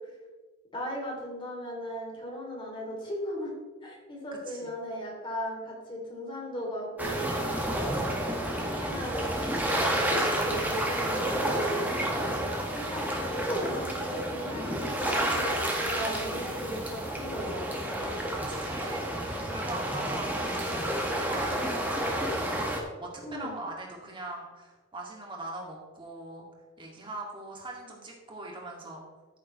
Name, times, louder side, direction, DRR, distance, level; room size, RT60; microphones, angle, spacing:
voice 1, 0.7-3.5 3.8-7.5 8.5-11.9 12.7-18.1 23.2-23.5, equal, 25° left, -2 dB, 3.0 m, -37 dB
sound 1, 7.0-22.8, right 1 dB, 10° right, 1.6 m, -30 dB
voice 2, 7.8-8.2 15.9-16.1 18.5-22.5 23.0-26.5 26.8-29.0, right 2 dB, 25° right, -1 dB, 2.4 m, -41 dB
14.0 x 7.3 x 3.2 m, 1.3 s
head